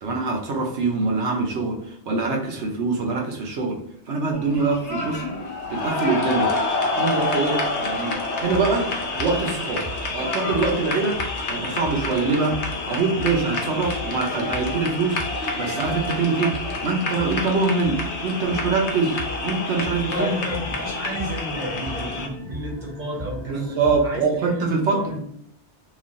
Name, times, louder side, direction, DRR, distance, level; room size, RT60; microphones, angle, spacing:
voice 1, 0.0-3.8 4.1-5.2 5.7-6.5 7.0-8.9 9.2-9.9 10.1-11.2 11.5-12.6 12.9-15.2 15.5-16.5 16.8-20.3 23.5-25.1, right 4 dB, 75° right, 1 dB, 1.0 m, -24 dB
sound 1, 4.3-22.3, left 3 dB, 75° left, 1.0 m, -28 dB
sound 2, 8.2-24.2, left 1 dB, 10° left, 0.7 m, -38 dB
voice 2, 20.1-25.2, equal, 45° right, -2 dB, 0.9 m, -31 dB
3.0 x 2.4 x 2.5 m, 0.66 s
omnidirectional pair, 1.2 m